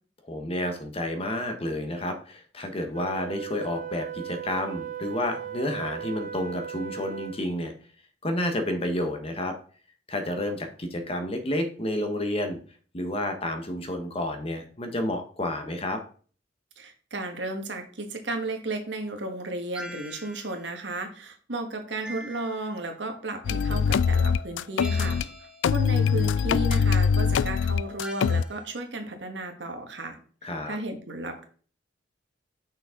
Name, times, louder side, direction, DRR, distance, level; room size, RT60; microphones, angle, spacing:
voice 1, 0.2-7.7 8.2-9.5 10.1-12.6 12.9-16.0 30.4-30.8, left 1 dB, 35° left, 6 dB, 1.1 m, -30 dB
Wind instrument woodwind instrument, 2.9-7.6, right 9 dB, 45° right, 0.5 m, -37 dB
voice 2, 16.8-25.2 25.7-30.2 30.7-31.4, right 2 dB, 75° right, 5 dB, 1.5 m, -34 dB
sound 1, 19.7-20.7 22.0-22.9 24.8-25.7 28.0-28.6, right 2 dB, 5° right, 0.7 m, -42 dB
sound 2, 23.4-25.3 25.6-28.4, left 6 dB, 90° left, 0.3 m, -23 dB
6.2 x 6.1 x 3.7 m, 0.42 s
head